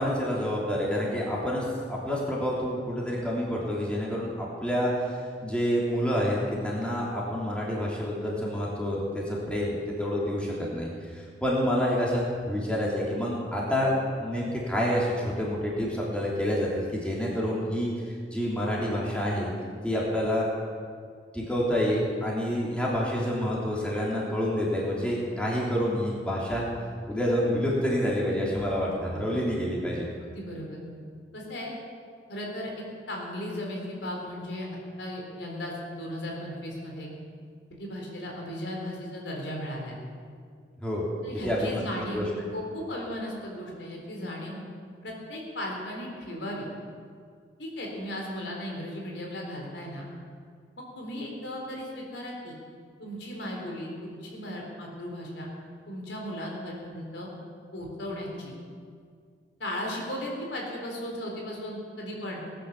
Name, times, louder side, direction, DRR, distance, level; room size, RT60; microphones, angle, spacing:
voice 1, 0.0-10.9 11.1-13.9 14.2-17.9 18.3-19.5 19.8-20.5 21.3-26.7 27.1-30.1 40.8-41.0 41.4-42.2, equal, 5° left, -5 dB, 3.2 m, -28 dB
voice 2, 30.2-30.8 31.3-31.7 32.3-34.7 35.0-37.1 37.8-40.0 41.2-44.6 45.0-46.7 47.6-50.0 50.9-52.6 53.0-55.5 55.9-57.3 57.7-58.5 59.6-62.4, left 1 dB, 85° left, -1 dB, 3.9 m, -36 dB
19.0 x 10.0 x 7.3 m, 2.1 s
head